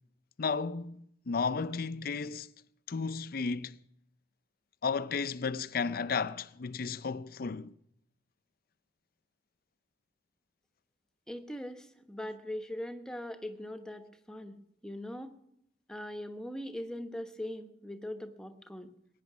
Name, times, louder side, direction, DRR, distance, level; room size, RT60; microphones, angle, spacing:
voice 1, 0.4-2.5 2.9-3.8 4.8-7.7, left 5 dB, 55° left, 0.5 m, -33 dB
voice 2, 11.3-14.5 14.8-15.3 15.9-18.9, left 1 dB, 5° left, 1.1 m, -41 dB
20.5 x 9.7 x 6.1 m
head